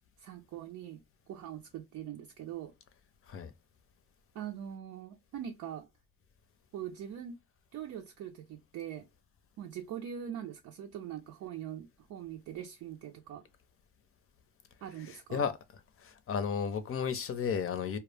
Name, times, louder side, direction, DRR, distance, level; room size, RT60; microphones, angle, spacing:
voice 1, 0.2-1.0 1.3-2.7 4.3-5.9 6.7-7.4 7.7-9.1 9.6-13.5 14.8-15.4, right 10 dB, 70° right, 0.5 m, -42 dB
voice 2, 15.0-15.5 16.0-18.0, left 7 dB, 45° left, 0.6 m, -33 dB
2.2 x 2.0 x 3.2 m
cardioid pair, 90°, 30 cm